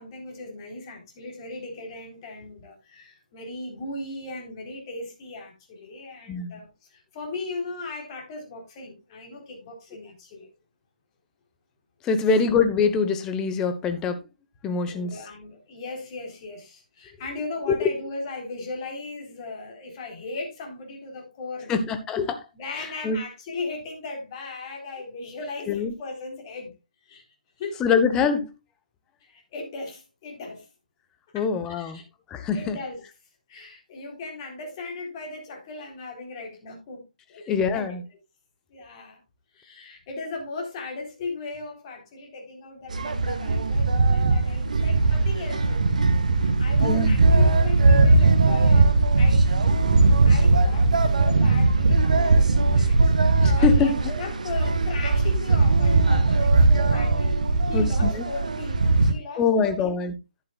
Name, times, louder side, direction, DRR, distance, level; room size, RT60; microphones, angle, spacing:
voice 1, 0.0-10.5 14.9-21.9 22.5-26.8 27.0-27.3 27.6-28.0 29.2-30.7 31.3-31.4 31.8-32.0 32.5-33.0 33.5-37.0 37.3-38.0 38.7-39.2 39.5-46.0 46.2-49.7 50.2-53.1 53.5-57.4 57.7-59.9, left 3 dB, 30° left, 4.0 m, -37 dB
voice 2, 6.3-6.6 12.0-14.2 14.6-15.1 17.7-17.9 21.7-22.4 22.8-23.2 25.7-25.9 27.8-28.5 31.3-32.0 32.3-32.8 37.5-38.0 46.8-47.2 53.4-53.9 57.7-58.1 59.4-60.1, left 5 dB, 15° left, 1.1 m, -24 dB
sound 1, 42.9-59.1, right 3 dB, 60° right, 1.5 m, -19 dB
11.0 x 10.5 x 2.4 m
figure-of-eight pair, 140°, 4 cm